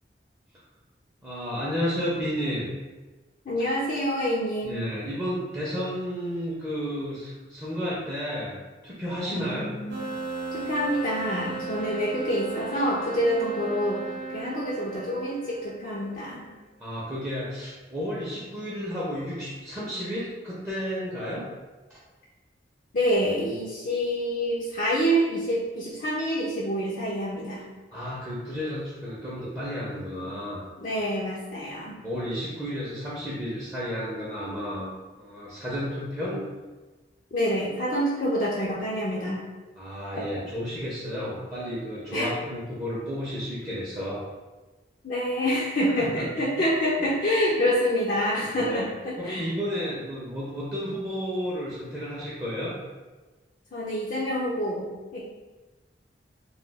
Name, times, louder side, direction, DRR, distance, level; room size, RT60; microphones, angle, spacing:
voice 1, 1.2-2.7 4.6-9.7 16.8-21.4 21.9-22.0 27.9-30.6 32.0-36.5 39.8-44.2 46.0-46.3 47.0-47.1 48.5-48.9 49.2-52.8, equal, 15° right, -7 dB, 0.5 m, -32 dB
voice 2, 3.5-4.9 9.3-10.0 10.5-14.0 14.3-16.5 22.9-27.6 30.8-32.0 37.3-39.4 42.1-42.3 45.0-49.5 53.7-55.2, equal, 50° left, -6 dB, 0.4 m, -27 dB
sound 1, 9.9-16.3, right 4 dB, 75° right, 0.5 m, -36 dB
2.2 x 2.2 x 3.3 m, 1.2 s
head